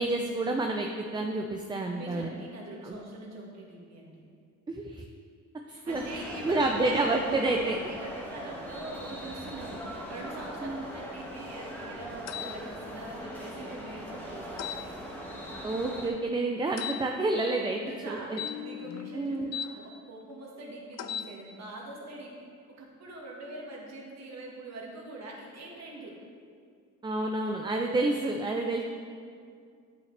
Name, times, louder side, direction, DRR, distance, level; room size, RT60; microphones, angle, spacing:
voice 1, 0.0-2.3 2.8-3.0 4.7-5.0 5.9-7.8 10.6-10.8 15.6-17.8 18.1-18.4 19.1-19.6 27.0-28.8, right 2 dB, 15° right, 3 dB, 0.4 m, -29 dB
voice 2, 1.9-4.2 5.7-7.1 7.9-15.0 17.9-22.3 22.7-26.2, right 2 dB, 60° right, -2 dB, 1.7 m, -43 dB
sound 1, 5.9-16.1, equal, 5° left, 1.3 m, -41 dB
sound 2, 12.3-12.5 14.6-14.8 16.8-17.0 18.3-19.7 20.9-21.3, left 10 dB, 60° left, 0.5 m, -36 dB
8.7 x 5.7 x 3.3 m, 2.3 s
cardioid pair, 90°, 30 cm